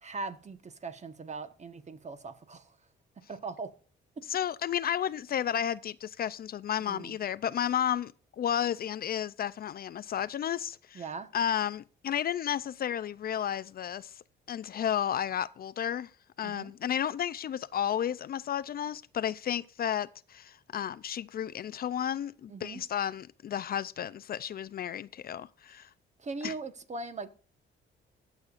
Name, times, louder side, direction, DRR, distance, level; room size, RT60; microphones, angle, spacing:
voice 1, 0.0-2.8 3.3-3.7 6.8-7.2 10.9-11.3 16.4-16.7 22.5-22.8 26.2-27.3, right 4 dB, 35° right, 1.2 m, -40 dB
voice 2, 4.3-11.0 11.3-14.2 14.5-16.1 16.4-25.9 26.4-26.5, left 9 dB, 50° left, 0.4 m, -32 dB
18.5 x 7.1 x 2.5 m
cardioid pair, 90°, 20 cm